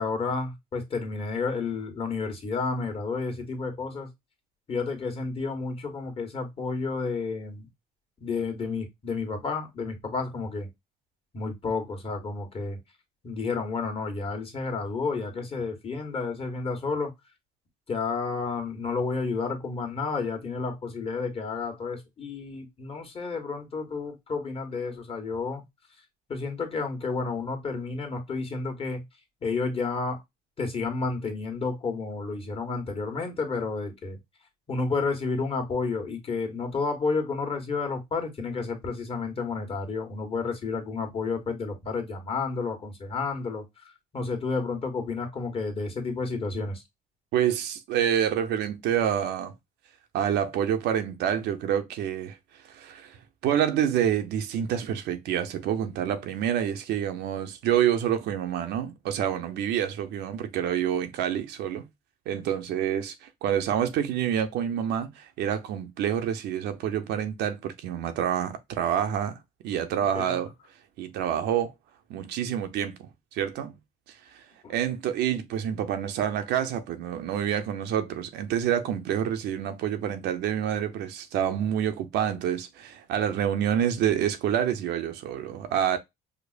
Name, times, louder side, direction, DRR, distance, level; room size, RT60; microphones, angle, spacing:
voice 1, 0.0-4.1 4.7-7.7 8.2-10.7 11.3-12.8 13.2-17.1 17.9-25.6 26.3-29.0 29.4-30.2 30.6-34.2 34.7-46.8 70.1-70.3 74.6-74.7, left 4 dB, 35° left, 1.3 m, -31 dB
voice 2, 47.3-49.5 50.1-52.4 52.6-53.2 53.4-61.9 62.3-69.4 69.6-70.5 71.0-71.7 72.1-72.9 73.3-73.8 74.3-74.4 74.7-86.0, right 9 dB, 80° right, 0.7 m, -27 dB
5.1 x 2.1 x 2.4 m
cardioid pair, 110°, 17 cm